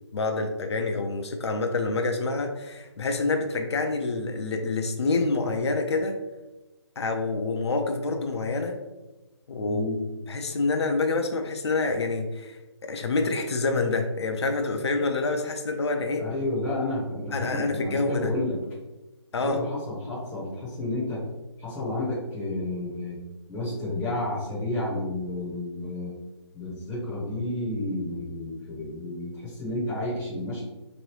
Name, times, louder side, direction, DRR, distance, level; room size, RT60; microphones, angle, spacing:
voice 1, 0.1-6.2 7.0-8.8 9.5-9.8 10.3-16.2 17.3-18.3 19.3-19.6, left 3 dB, 65° left, 4 dB, 0.4 m, -27 dB
voice 2, 9.6-10.0 16.2-18.6 19.4-21.3 21.6-23.2 23.5-26.1 26.5-30.6, left 1 dB, 10° left, -8 dB, 0.7 m, -31 dB
3.0 x 2.6 x 3.0 m, 1.1 s
figure-of-eight pair, 150°, 15 cm